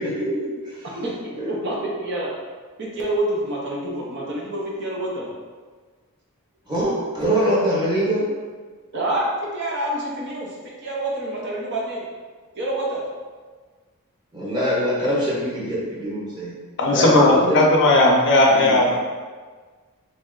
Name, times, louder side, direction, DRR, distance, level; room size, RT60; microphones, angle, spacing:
voice 1, 0.0-0.8 1.3-1.6 6.7-8.3 14.3-16.5 16.9-17.6 18.5-18.8, equal, 20° right, -7 dB, 1.0 m, -23 dB
voice 2, 1.0-2.3 2.8-5.3 8.9-9.3 9.5-12.1 12.5-13.0 16.8-16.9, right 1 dB, 50° right, -4 dB, 0.8 m, -27 dB
voice 3, 16.8-19.0, left 1 dB, 55° left, -1 dB, 0.6 m, -16 dB
3.1 x 2.7 x 3.7 m, 1.5 s
head